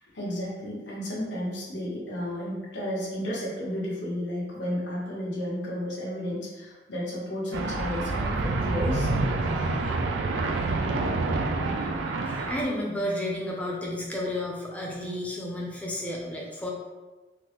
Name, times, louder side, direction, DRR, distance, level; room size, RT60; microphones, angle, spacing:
voice 1, 0.1-9.1 11.6-11.7, equal, 75° left, -6 dB, 1.1 m, -32 dB
sound 1, 7.5-12.6, right 3 dB, 75° right, 0.3 m, -27 dB
voice 2, 12.2-16.7, left 1 dB, 5° left, -3 dB, 0.4 m, -32 dB
3.4 x 2.1 x 2.9 m, 1.2 s
head